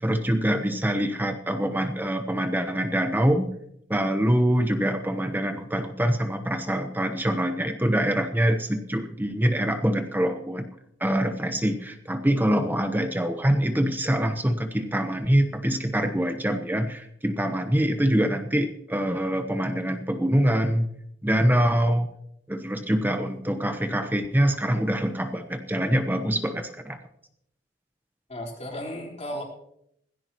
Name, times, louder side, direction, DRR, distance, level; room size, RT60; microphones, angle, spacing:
voice 1, 0.0-3.5 3.9-10.7 11.0-20.9 21.2-22.1 22.5-27.0, equal, 10° right, 7 dB, 1.0 m, -24 dB
voice 2, 28.3-29.4, left 1 dB, 35° left, -2 dB, 4.3 m, -34 dB
18.0 x 15.5 x 3.1 m, 0.75 s
head